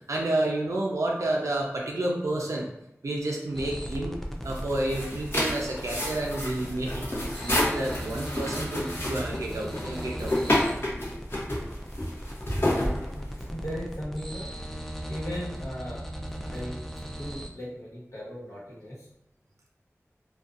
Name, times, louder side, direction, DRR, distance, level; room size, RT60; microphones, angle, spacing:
voice 1, 0.1-2.7 3.0-7.1 7.4-10.3 12.6-12.9, right 1 dB, 85° right, -2 dB, 0.4 m, -30 dB
sound 1, 3.5-17.5, equal, 5° left, 0.3 m, -38 dB
sound 2, 4.4-13.6, left 1 dB, 50° left, 0.7 m, -30 dB
voice 2, 13.1-14.4 15.1-16.0 16.4-19.1, equal, 70° left, -7 dB, 1.1 m, -38 dB
2.6 x 2.2 x 2.4 m, 0.84 s
wide cardioid pair, 55°, 5 cm